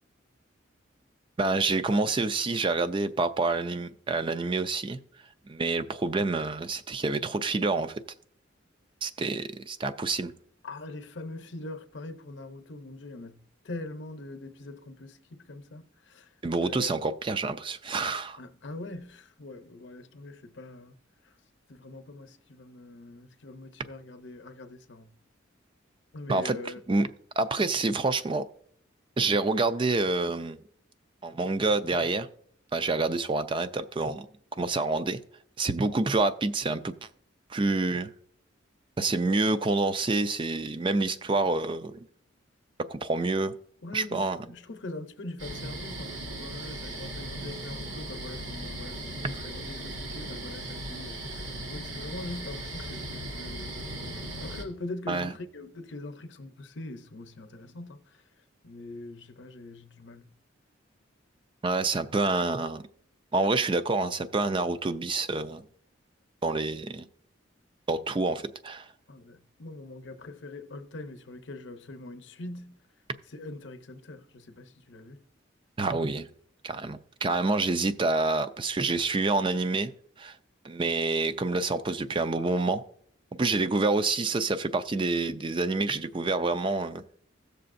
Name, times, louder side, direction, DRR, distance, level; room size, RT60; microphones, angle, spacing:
voice 1, 1.4-5.0 5.5-7.9 9.0-10.3 16.4-18.4 26.3-26.6 26.9-27.1 27.4-28.5 29.2-30.6 31.2-32.3 32.7-34.3 34.6-35.2 35.6-36.9 37.5-38.1 39.0-42.0 42.9-43.6 43.9-44.5 49.2-49.3 55.1-55.3 61.6-62.8 63.3-65.6 66.4-67.0 67.9-68.9 75.8-76.3 76.6-79.9 80.2-80.4 80.6-82.8 83.4-87.0, right 3 dB, 25° right, 0.4 m, -27 dB
voice 2, 10.6-13.4 13.6-16.3 16.6-16.9 18.4-21.0 21.7-25.1 26.1-26.8 43.8-53.1 53.3-53.8 54.4-58.0 58.6-60.3 69.1-72.8 73.3-75.2, left 2 dB, 65° left, 0.7 m, -42 dB
sound 1, 45.4-54.6, right 1 dB, 75° right, 1.8 m, -38 dB
16.5 x 6.7 x 2.6 m
head